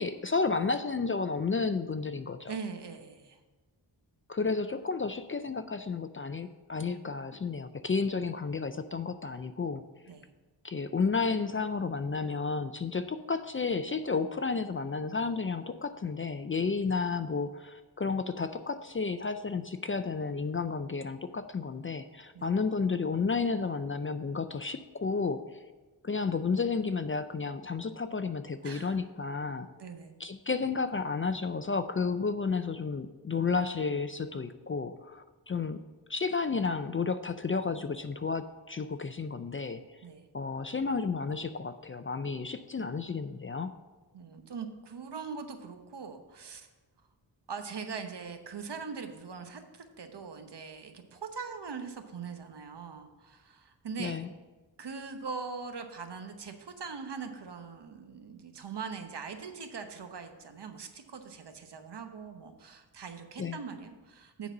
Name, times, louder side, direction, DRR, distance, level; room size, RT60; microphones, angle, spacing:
voice 1, 0.0-2.6 4.3-9.8 10.6-25.6 26.0-29.7 30.2-35.8 36.1-39.8 40.3-43.7 54.0-54.3 63.4-63.6, left 4 dB, 30° left, 11 dB, 0.4 m, -32 dB
voice 2, 2.5-3.4 10.1-10.3 22.3-22.5 28.6-29.0 29.8-30.1 40.0-40.2 44.1-46.7 47.5-54.2 54.8-64.5, right 5 dB, 65° right, 7 dB, 1.0 m, -41 dB
9.3 x 4.0 x 7.1 m, 1.2 s
wide cardioid pair, 75°, 44 cm